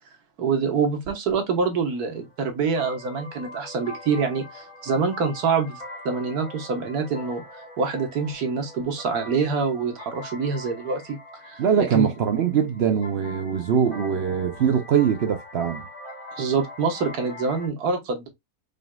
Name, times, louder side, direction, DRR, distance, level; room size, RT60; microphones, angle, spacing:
voice 1, 0.4-7.4 7.8-11.2 11.4-12.1 16.4-18.3, right 5 dB, 75° right, 1.7 m, -26 dB
sound 1, 1.9-17.7, left 2 dB, 35° left, 1.6 m, -42 dB
voice 2, 11.6-15.8, right 7 dB, 60° right, 0.6 m, -22 dB
5.1 x 3.7 x 2.2 m
omnidirectional pair, 1.6 m